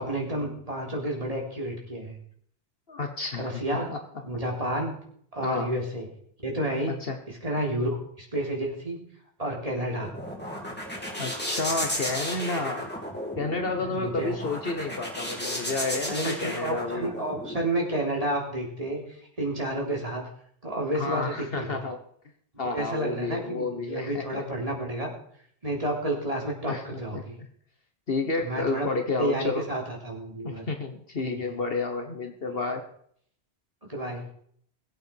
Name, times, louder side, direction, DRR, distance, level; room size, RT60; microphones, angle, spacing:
voice 1, 0.0-2.2 3.4-3.9 4.3-4.9 5.3-6.1 6.4-7.0 7.3-9.0 9.4-10.1 13.8-14.4 16.1-19.0 19.4-20.3 20.6-21.8 22.7-25.1 25.6-27.4 28.4-28.9 29.2-30.6 31.2-31.6 33.9-34.2, right 1 dB, 35° right, -1 dB, 3.6 m, -30 dB
voice 2, 2.9-3.5 3.9-4.0 5.4-5.7 6.9-7.2 7.6-7.7 11.2-12.9 13.4-17.1 20.9-22.0 22.6-24.4 26.6-27.2 28.1-29.6 30.4-32.9, left 3 dB, 60° left, 5 dB, 1.5 m, -30 dB
sound 1, 9.7-17.6, equal, 10° left, 3.3 m, -34 dB
21.0 x 8.6 x 4.7 m, 0.63 s
omnidirectional pair, 1.1 m